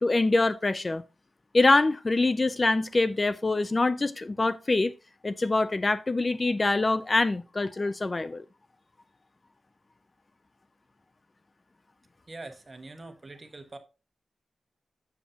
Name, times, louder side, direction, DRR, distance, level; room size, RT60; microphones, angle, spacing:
voice 1, 0.0-1.0 1.5-4.9 5.2-8.4, left 2 dB, 30° left, 0.4 m, -24 dB
voice 2, 12.3-13.8, right 2 dB, 30° right, 1.3 m, -43 dB
8.4 x 7.2 x 2.8 m
wide cardioid pair, 100°, 0 cm